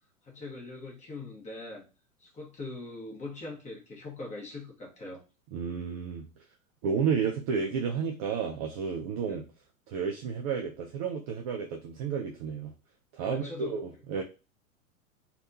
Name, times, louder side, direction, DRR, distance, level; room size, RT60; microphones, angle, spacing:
voice 1, 0.2-1.9 2.2-5.2 9.3-9.4 13.2-13.8 14.1-14.2, left 3 dB, 15° left, -1 dB, 1.2 m, -41 dB
voice 2, 5.5-6.3 6.8-9.4 9.9-12.7 13.1-14.2, right 6 dB, 30° right, 2 dB, 0.4 m, -31 dB
3.3 x 2.4 x 2.6 m, 0.30 s
figure-of-eight pair, 100°, 41 cm